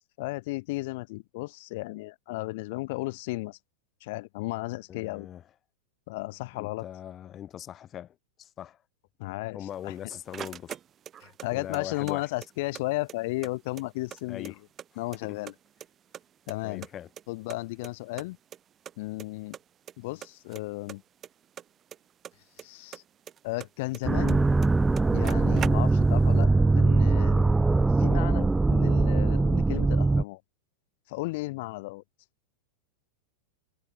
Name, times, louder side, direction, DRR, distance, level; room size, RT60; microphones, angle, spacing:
voice 1, 0.2-3.6 4.0-5.3 6.1-6.9 9.2-9.9 11.2-14.5 15.0-15.5 16.5-16.9 17.3-18.4 19.0-19.6 20.0-21.0 22.6-23.0 23.4-24.4 25.1-27.5 28.0-30.4 31.1-32.0, left 22 dB, 60° left, 1.9 m, -34 dB
voice 2, 4.9-5.4 6.5-8.8 9.5-10.8 11.5-12.3 14.3-14.6 15.3-15.4 16.6-17.1, left 10 dB, 30° left, 4.2 m, -40 dB
sound 1, 9.7-11.5 11.7-12.8 13.1-13.2 13.4-14.9 15.1-15.9 16.1-17.6 17.8-17.9 18.2-18.3 18.5-18.6 18.8-19.3 19.5-19.9 20.2-22.6 22.9-24.4 24.6-24.7 24.9-26.2, right 9 dB, 25° right, 3.7 m, -41 dB
sound 2, 24.0-30.2, right 3 dB, 10° right, 0.5 m, -22 dB
supercardioid pair, 140°, 0 cm